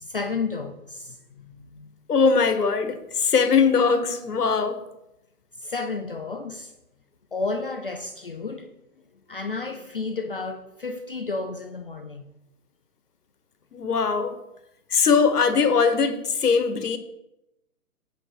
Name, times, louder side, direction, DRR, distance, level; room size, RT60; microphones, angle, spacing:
voice 1, 0.0-2.0 5.6-6.7 7.3-8.7 9.3-12.2, left 4 dB, 40° left, 0.4 m, -32 dB
voice 2, 2.1-4.8 13.7-14.4 14.9-17.0, left 5 dB, 90° left, 1.2 m, -21 dB
8.1 x 3.6 x 5.9 m
hypercardioid pair, 155°, 45 cm